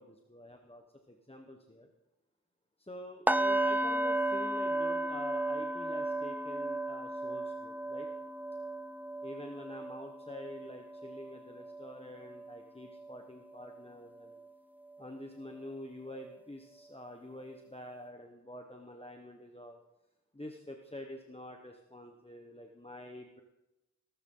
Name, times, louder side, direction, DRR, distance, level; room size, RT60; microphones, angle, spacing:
voice 1, 0.0-1.9 2.8-8.1 9.2-14.3 15.0-19.8 20.3-23.4, left 1 dB, 20° left, 3 dB, 1.1 m, -47 dB
sound 1, 3.3-13.2 13.5-13.8 14.2-14.4, right 1 dB, 5° right, 0.5 m, -34 dB
18.0 x 13.0 x 3.9 m, 0.96 s
wide cardioid pair, 40°, 30 cm